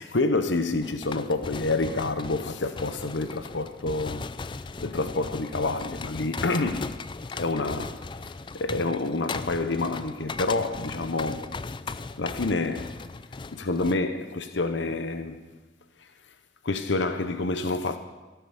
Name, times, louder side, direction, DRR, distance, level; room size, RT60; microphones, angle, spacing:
voice 1, 0.0-4.3 4.8-7.0 7.3-8.3 8.5-11.5 12.2-12.9 13.4-15.4 16.6-18.0, left 2 dB, 75° left, 0.9 m, -28 dB
sound 1, 0.8-14.0, left 4 dB, 25° left, 0.4 m, -38 dB
15.0 x 9.4 x 7.2 m
head